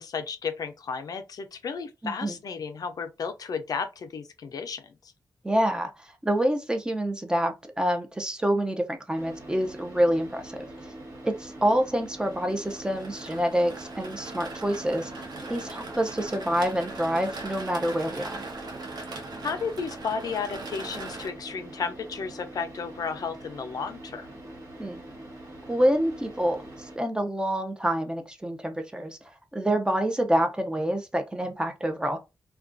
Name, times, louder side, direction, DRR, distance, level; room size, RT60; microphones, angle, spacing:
voice 1, 0.0-5.1 18.9-19.1 19.4-24.3, left 5 dB, 65° left, 0.4 m, -33 dB
voice 2, 2.0-2.4 5.4-10.7 11.2-15.1 15.5-18.4 24.8-25.0 25.7-29.2 29.5-32.2, equal, 10° right, 0.5 m, -27 dB
Car / Idling, 9.2-27.0, right 1 dB, 60° right, 1.1 m, -44 dB
sound 1, 12.3-21.3, right 3 dB, 80° right, 0.7 m, -40 dB
2.3 x 2.2 x 2.5 m
cardioid pair, 85°, 7 cm